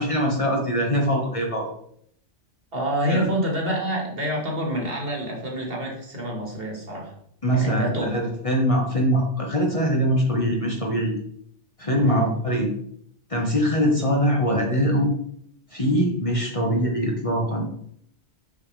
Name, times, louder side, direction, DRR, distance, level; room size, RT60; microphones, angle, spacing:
voice 1, 0.0-1.7 3.1-3.2 7.4-11.1 11.8-12.7 13.3-15.1 15.7-17.6, equal, 30° left, -1 dB, 1.2 m, -22 dB
voice 2, 2.7-7.1 7.5-8.1 12.0-12.3, equal, 55° right, 0 dB, 1.8 m, -27 dB
6.1 x 5.7 x 3.2 m, 0.68 s
omnidirectional pair, 1.2 m